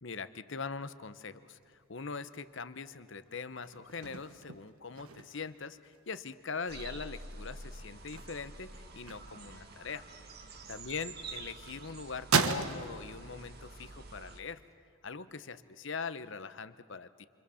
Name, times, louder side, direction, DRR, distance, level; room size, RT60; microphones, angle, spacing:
voice 1, 0.0-10.0 10.7-14.6 15.0-17.3, left 5 dB, 55° left, 12 dB, 0.9 m, -42 dB
sound 1, 1.6-11.0 11.4-13.9 14.2-15.7, right 5 dB, 80° right, 1.2 m, -37 dB
sound 2, 6.7-14.4, right 3 dB, 45° right, 1.5 m, -48 dB
28.5 x 24.0 x 7.0 m, 2.4 s
head